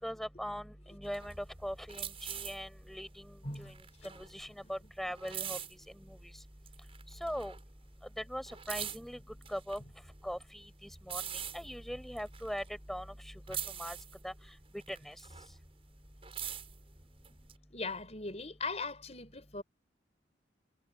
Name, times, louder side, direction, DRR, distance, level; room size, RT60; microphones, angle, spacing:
voice 1, 0.0-1.3 1.6-3.2 3.6-3.7 4.0-5.6 7.2-7.5 8.3-9.2 9.5-9.8 10.2-10.4 11.1-11.2 11.5-12.6 12.9-13.1 13.5-14.0 14.2-14.3 14.9-15.1, equal, ahead, 7.0 m, -40 dB
sound 1, 1.0-6.3 6.6-8.0 8.2-13.2 13.5-15.7 16.0-17.5, right 9 dB, 30° right, 6.7 m, -44 dB
voice 2, 3.4-4.1 4.6-4.7 13.5-13.6 17.3-17.4 17.7-19.6, left 3 dB, 35° left, 5.2 m, -40 dB
head